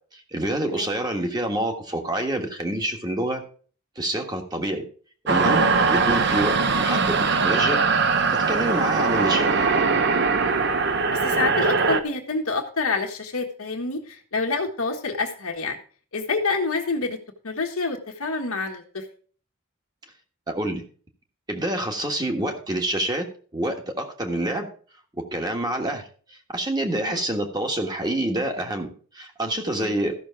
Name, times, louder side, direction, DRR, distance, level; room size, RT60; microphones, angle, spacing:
voice 1, 0.1-3.4 3.9-4.8 5.3-7.8 8.3-9.5 20.5-20.8 21.5-23.3 23.5-24.7 25.3-26.1 26.5-30.1, right 1 dB, 20° right, 3 dB, 1.5 m, -27 dB
sound 1, 5.3-12.0, right 4 dB, 55° right, 0.8 m, -21 dB
voice 2, 5.4-5.8 11.1-15.8 16.1-17.2 17.4-19.0 27.0-27.2 29.7-29.9, left 3 dB, 85° left, 1 dB, 1.5 m, -28 dB
14.0 x 6.4 x 4.7 m, 0.43 s
head